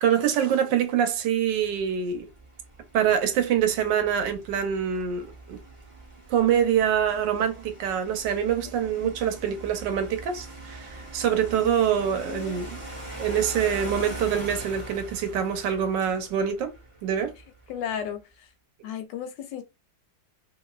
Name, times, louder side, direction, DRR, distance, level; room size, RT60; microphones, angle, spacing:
voice 1, 0.0-2.3 2.9-5.6 6.3-12.8 13.2-16.7 17.0-17.3, right 8 dB, 75° right, 1.2 m, -25 dB
sound 1, 1.6-17.7, right 2 dB, 50° right, 0.3 m, -42 dB
voice 2, 12.0-12.6 17.7-18.2 18.8-19.6, left 8 dB, 75° left, 1.2 m, -34 dB
2.9 x 2.5 x 2.3 m
omnidirectional pair, 2.0 m